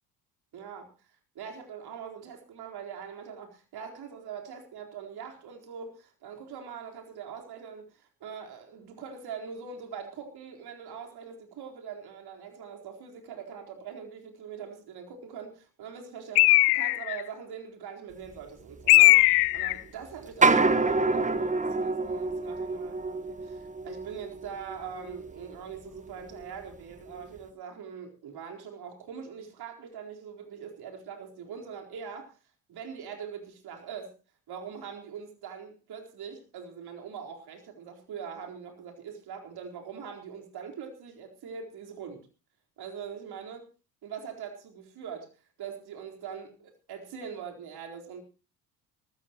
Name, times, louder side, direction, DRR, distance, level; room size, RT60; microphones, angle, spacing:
voice 1, 0.5-0.9 1.3-19.3 19.5-32.3 32.7-34.1 34.5-42.3 42.8-43.7 44.0-45.3 45.6-48.2, right 7 dB, 55° right, 2 dB, 4.3 m, -42 dB
Bird, 16.4-17.2 18.9-19.8, left 23 dB, 80° left, 0.7 m, -19 dB
sound 1, 18.4-18.5 18.8-19.7 20.3-25.5 25.8-26.5 27.1-27.3, right 3 dB, 15° right, 1.3 m, -28 dB
23.5 x 14.0 x 3.0 m, 0.31 s
hypercardioid pair, 60°, 45 cm